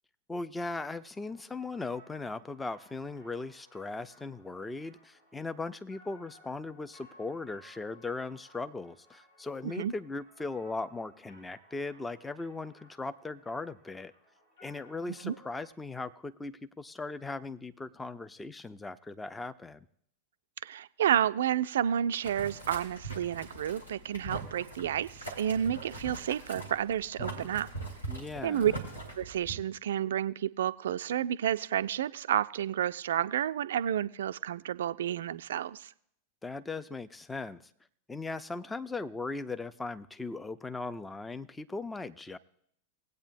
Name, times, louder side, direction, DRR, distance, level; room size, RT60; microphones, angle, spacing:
voice 1, 0.3-14.1 14.6-19.9 28.1-28.8 36.4-37.7 38.1-42.4, left 3 dB, 10° left, 13 dB, 0.4 m, -38 dB
sound 1, 1.0-15.6, equal, 65° left, 3.9 m, -60 dB
voice 2, 20.6-27.7 28.4-28.7 29.2-35.9, right 10 dB, 60° right, 15 dB, 0.3 m, -30 dB
Boiling, 22.2-29.5, right 2 dB, 85° left, 2.0 m, -42 dB
19.5 x 8.5 x 2.6 m, 0.67 s
figure-of-eight pair, 90°, 0 cm